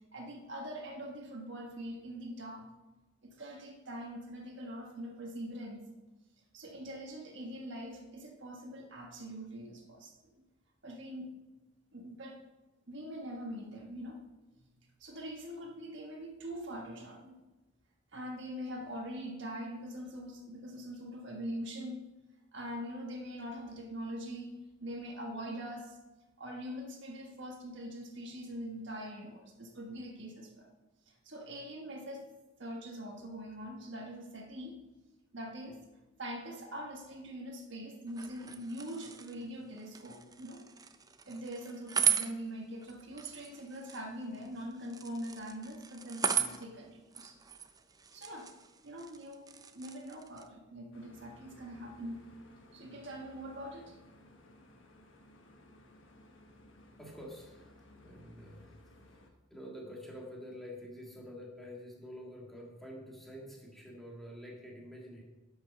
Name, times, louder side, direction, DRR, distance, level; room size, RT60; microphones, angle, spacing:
voice 1, 0.1-2.7 3.2-5.8 6.5-10.1 10.8-11.3 11.9-12.4 12.9-14.2 14.6-14.7 15.0-17.3 18.1-22.1 22.5-26.0 26.4-30.7 31.1-32.3 32.6-34.8 35.3-35.8 36.2-40.6 41.2-47.4 48.1-48.5 48.8-52.2 52.7-53.9, equal, 60° right, 1 dB, 1.5 m, -43 dB
sound 1, 38.1-50.5, right 8 dB, 20° right, 0.5 m, -38 dB
sound 2, 50.9-59.3, left 1 dB, 65° left, 1.3 m, -58 dB
voice 2, 57.0-58.8 59.1-59.2 59.5-65.2, equal, ahead, -3 dB, 1.8 m, -48 dB
12.0 x 5.5 x 5.3 m, 1.1 s
head